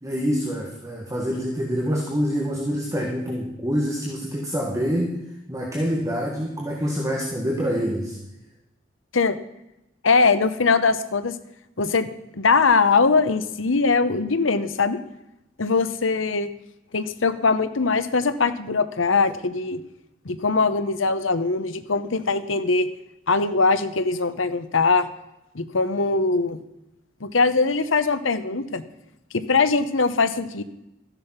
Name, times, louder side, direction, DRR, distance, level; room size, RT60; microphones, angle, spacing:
voice 1, 0.0-5.2 5.5-8.2, equal, 15° right, 0 dB, 1.7 m, -26 dB
voice 2, 10.0-11.3 11.8-15.0 15.6-16.5 16.9-19.8 20.2-22.9 23.3-25.1 25.5-26.6 27.2-28.8 29.3-30.6, left 4 dB, 80° left, 12 dB, 1.0 m, -21 dB
14.0 x 10.5 x 5.8 m, 0.89 s
head